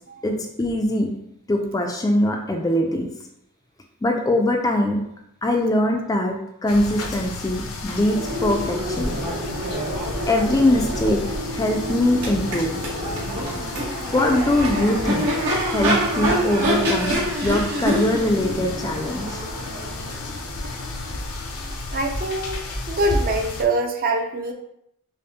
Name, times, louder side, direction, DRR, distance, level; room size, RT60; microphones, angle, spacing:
voice 1, 0.2-1.1 1.5-3.1 4.0-5.1 5.4-9.2 10.3-11.2 11.5-12.7 14.1-15.3 15.7-19.4, left 1 dB, 15° left, 2 dB, 0.3 m, -22 dB
sound 1, 6.7-23.6, left 2 dB, 70° left, 0.6 m, -32 dB
Crowd / Race car auto racing / Accelerating revving vroom, 7.9-21.8, right 1 dB, 85° right, 1.4 m, -27 dB
voice 2, 21.9-24.5, right 2 dB, 40° right, 3 dB, 0.5 m, -24 dB
5.2 x 2.1 x 2.8 m, 0.77 s
head